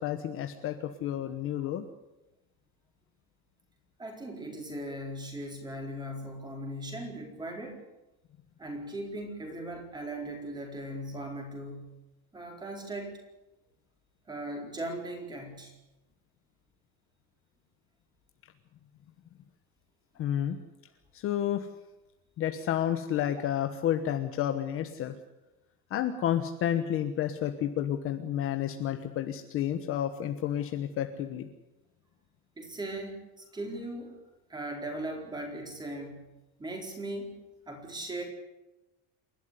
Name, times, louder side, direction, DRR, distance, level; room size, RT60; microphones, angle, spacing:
voice 1, 0.0-1.9 20.2-20.6 21.1-21.7 22.4-25.1 25.9-31.5, left 10 dB, 35° left, 7 dB, 1.2 m, -30 dB
voice 2, 4.0-7.8 8.6-11.9 12.3-13.2 14.3-15.7 32.6-34.2 34.5-36.3 36.6-37.4 37.7-38.2, right 1 dB, 10° right, 2 dB, 4.3 m, -38 dB
28.5 x 12.0 x 9.7 m, 0.98 s
cardioid pair, 180°, 39 cm